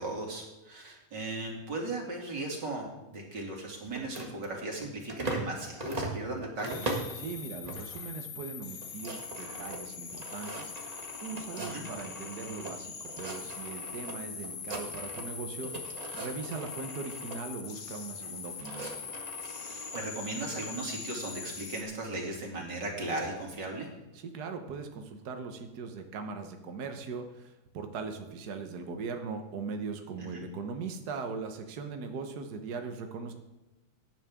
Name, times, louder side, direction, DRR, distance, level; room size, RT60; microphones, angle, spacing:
voice 1, 0.0-7.0 11.6-11.9 19.6-23.9 30.2-30.4, right 2 dB, 35° right, 0 dB, 3.1 m, -37 dB
sound 1, 3.9-5.5 5.8-7.2 7.6-8.1 8.4-8.5 8.7-12.7 13.0-14.1 14.4-15.4 15.6-17.4 18.2-20.0, right 2 dB, 20° right, 1.1 m, -40 dB
sound 2, 6.6-21.8, left 6 dB, 80° left, 2.9 m, -42 dB
voice 2, 7.1-10.7 11.2-18.9 24.1-33.3, right 4 dB, 75° right, 6 dB, 0.9 m, -40 dB
17.0 x 10.5 x 3.6 m, 1.0 s
omnidirectional pair, 3.3 m